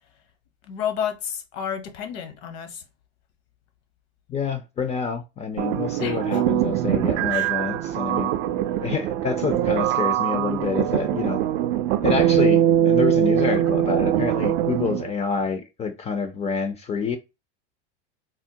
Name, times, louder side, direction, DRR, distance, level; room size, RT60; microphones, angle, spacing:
voice 1, 0.7-2.8 6.0-6.4 7.3-7.5, left 8 dB, 65° left, 0.9 m, -31 dB
voice 2, 4.3-8.3 8.8-11.4 12.0-17.2, left 5 dB, 20° left, 0.4 m, -27 dB
sound 1, 5.6-15.1, right 12 dB, 60° right, 0.4 m, -22 dB
3.5 x 2.0 x 2.7 m
hypercardioid pair, 105°, 33 cm